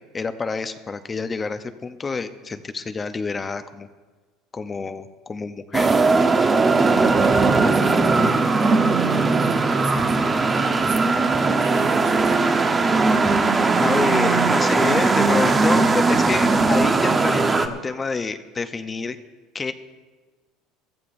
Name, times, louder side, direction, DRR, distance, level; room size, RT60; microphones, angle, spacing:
voice 1, 0.1-3.9 4.5-5.9 10.7-10.8 13.8-19.2 19.5-19.7, left 4 dB, 20° left, 9 dB, 0.7 m, -28 dB
sound 1, 5.7-17.7, right 3 dB, 25° right, 1.0 m, -19 dB
voice 2, 7.2-10.2 10.5-12.4, right 4 dB, 85° right, -3 dB, 5.0 m, -37 dB
22.5 x 14.0 x 2.6 m, 1.3 s
supercardioid pair, 115°, 0 cm